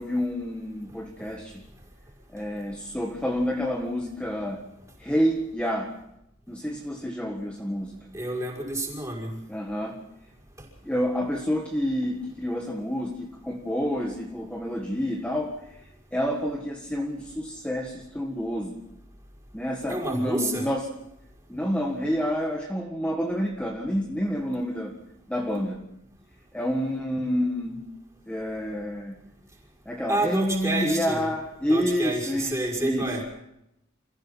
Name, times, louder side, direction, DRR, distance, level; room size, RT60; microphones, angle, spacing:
voice 1, 0.0-1.7 2.3-4.7 5.0-5.9 6.5-8.1 9.5-10.0 10.8-15.5 16.1-18.8 19.5-20.8 21.5-25.0 25.3-25.8 26.5-27.8 28.3-29.2 29.9-33.2, equal, 5° left, 0 dB, 1.7 m, -28 dB
voice 2, 8.1-9.4 19.9-20.7 30.1-31.2 31.7-33.2, right 1 dB, 15° right, -1 dB, 5.7 m, -29 dB
29.5 x 15.5 x 5.7 m, 0.82 s
head